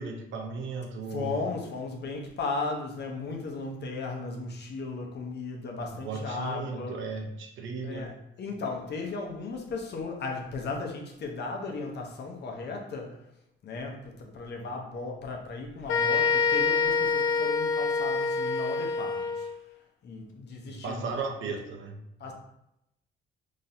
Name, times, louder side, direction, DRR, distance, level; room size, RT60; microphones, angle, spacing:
voice 1, 0.0-1.4 6.0-8.1 20.8-22.0, right 4 dB, 75° right, 3 dB, 0.7 m, -35 dB
voice 2, 1.1-7.0 7.8-13.2 13.6-19.5 20.0-21.1 22.2-22.3, left 3 dB, 60° left, 1 dB, 0.8 m, -36 dB
sound 1, 15.9-19.5, left 5 dB, 80° left, 0.5 m, -26 dB
3.9 x 3.0 x 2.7 m, 0.82 s
cardioid pair, 90°, 20 cm